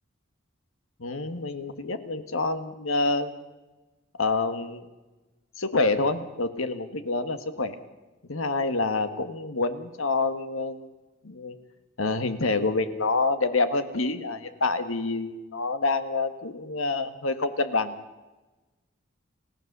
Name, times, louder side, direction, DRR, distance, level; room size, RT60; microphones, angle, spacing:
voice 1, 1.0-3.3 4.2-4.9 5.6-7.7 8.3-10.9 11.2-11.5 12.0-17.9, left 3 dB, 85° left, 9 dB, 1.6 m, -27 dB
29.5 x 15.5 x 6.8 m, 1.1 s
head